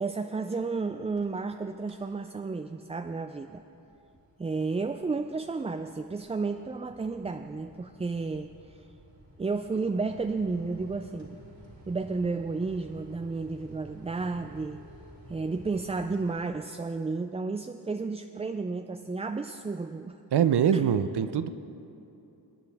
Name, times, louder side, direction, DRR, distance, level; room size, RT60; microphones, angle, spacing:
voice 1, 0.0-3.6 4.4-8.8 9.4-11.4 11.9-14.9 15.3-20.2 20.7-20.8, right 4 dB, 15° right, 7 dB, 0.3 m, -32 dB
sound 1, 1.0-1.5 1.8-2.2 2.6-16.9, right 1 dB, 80° right, 2.3 m, -53 dB
voice 2, 20.3-21.5, right 8 dB, 60° right, 12 dB, 0.6 m, -23 dB
20.5 x 9.3 x 3.5 m, 2.8 s
cardioid pair, 45°, 45 cm